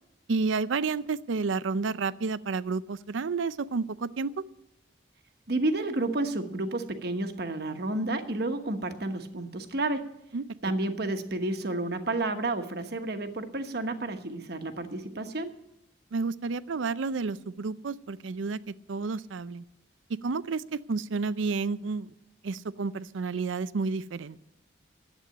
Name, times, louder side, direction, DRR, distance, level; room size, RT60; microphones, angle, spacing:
voice 1, 0.3-4.4 10.3-10.4 16.1-19.6 20.1-22.1 22.4-24.4, right 4 dB, 80° right, 17 dB, 0.5 m, -31 dB
voice 2, 5.5-10.1 10.6-15.5, right 2 dB, 55° right, 7 dB, 1.2 m, -31 dB
11.5 x 8.3 x 9.9 m, 0.82 s
head